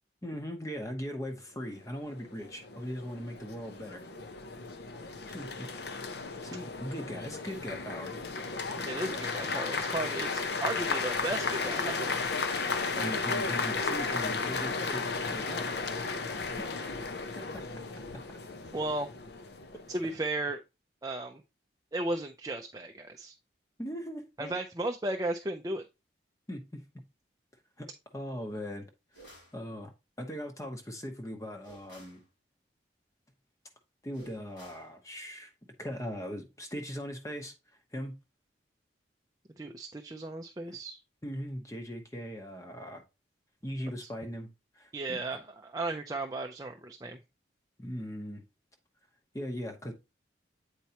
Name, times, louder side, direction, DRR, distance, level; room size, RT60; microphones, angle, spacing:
voice 1, 0.2-4.0 5.3-5.7 6.4-8.1 12.9-15.9 16.6-16.8 17.4-17.6 23.8-24.5 26.5-26.8 27.8-27.9 28.1-28.9 29.5-29.9 30.2-32.2 34.0-35.5 35.8-37.5 37.9-38.2 40.7-40.8 41.2-43.0 43.6-44.5 44.8-45.2 47.8-48.4 49.3-49.9, equal, 15° left, 0.9 m, -39 dB
sound 1, 1.9-20.2, left 4 dB, 60° left, 0.7 m, -34 dB
voice 2, 8.9-12.1 18.7-19.1 19.9-20.6 21.0-21.4 21.9-23.3 24.4-25.9 39.6-41.0 44.0-44.1 44.9-47.2, right 2 dB, 20° right, 0.4 m, -35 dB
sound 2, 29.1-29.6 31.6-32.2 34.1-34.9, right 1 dB, 85° left, 3.9 m, -54 dB
8.2 x 4.5 x 2.9 m
head